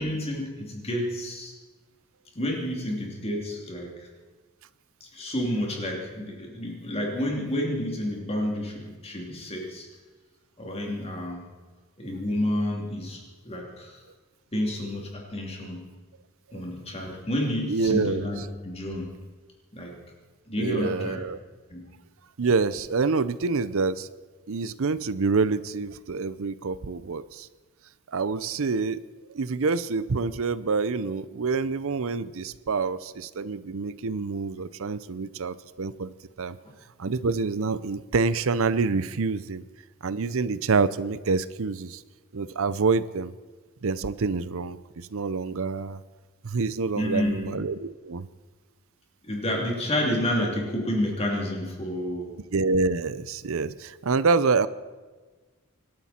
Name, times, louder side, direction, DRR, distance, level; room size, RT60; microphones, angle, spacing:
voice 1, 0.0-1.5 2.3-3.9 5.0-9.9 10.6-11.4 12.0-14.0 14.5-15.8 16.5-19.1 19.7-19.9 20.5-21.2 21.7-21.8 36.6-36.7 46.9-47.6 49.2-52.3, left 1 dB, 30° left, -1 dB, 3.1 m, -30 dB
voice 2, 17.6-18.3 20.6-21.4 22.4-24.1 24.5-27.5 28.1-29.0 29.3-36.1 36.4-36.6 37.0-39.6 40.0-42.0 42.3-43.3 43.8-46.0 46.4-48.3 52.5-54.7, right 4 dB, 65° right, 16 dB, 0.6 m, -27 dB
26.0 x 12.5 x 4.4 m, 1.3 s
head